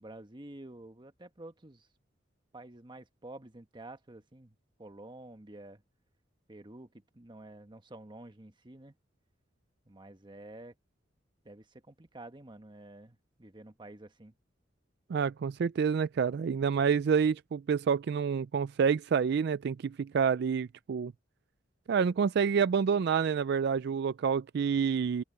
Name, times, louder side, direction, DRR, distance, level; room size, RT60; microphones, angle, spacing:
voice 1, 0.0-1.9 2.5-5.8 6.5-8.9 9.9-10.7 11.4-14.3, right 2 dB, 25° right, 1.2 m, -49 dB
voice 2, 15.1-21.1 21.9-25.2, right 6 dB, 60° right, 0.3 m, -28 dB
open air
head